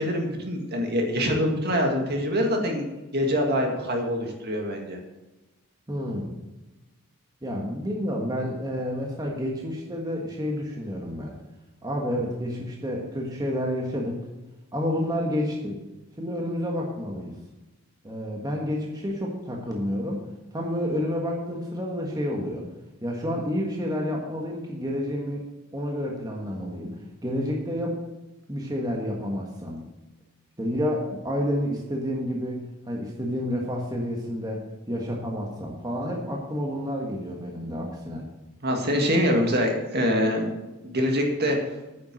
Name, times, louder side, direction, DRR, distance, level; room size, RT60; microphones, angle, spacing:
voice 1, 0.0-2.9 3.1-5.0 38.6-40.5 40.8-41.6, equal, 45° right, 2 dB, 2.0 m, -24 dB
voice 2, 5.9-6.3 7.4-11.3 11.8-14.3 14.7-15.8 16.2-17.3 18.0-20.3 20.5-22.6 23.0-25.4 25.7-28.0 28.5-29.8 30.6-38.2, equal, 15° right, -1 dB, 1.5 m, -29 dB
9.3 x 7.2 x 7.6 m, 1.1 s
head